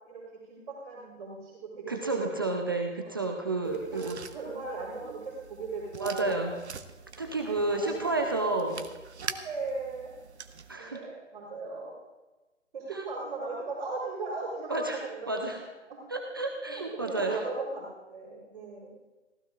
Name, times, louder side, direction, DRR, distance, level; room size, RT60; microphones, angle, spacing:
voice 1, 0.5-2.6 3.0-3.1 3.6-6.4 7.4-7.9 8.7-8.8 9.2-10.1 10.7-11.9 12.7-15.4 15.9-16.0 16.7-18.9, right 3 dB, 40° right, -6 dB, 4.0 m, -37 dB
voice 2, 1.9-4.2 6.0-6.5 7.2-8.9 10.7-11.0 12.9-13.0 14.7-15.0 15.3-15.6 16.1-17.4, right 2 dB, 20° right, 2 dB, 0.5 m, -31 dB
sound 1, 3.6-10.8, right 5 dB, 60° right, 1.0 m, -45 dB
25.5 x 15.5 x 2.5 m, 1.1 s
figure-of-eight pair, 145°, 37 cm